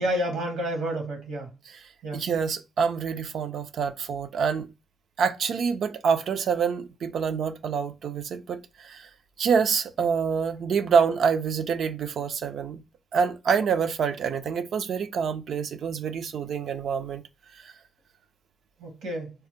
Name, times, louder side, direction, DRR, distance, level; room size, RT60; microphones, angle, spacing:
voice 1, 0.0-1.5 2.0-2.3 18.8-19.3, equal, 90° right, 1.0 m, -29 dB
voice 2, 2.1-4.7 5.2-9.1 9.4-12.8 13.1-17.2 17.6-17.7, right 6 dB, 70° right, 0.3 m, -26 dB
3.3 x 2.0 x 2.8 m
supercardioid pair, 55°, 0 cm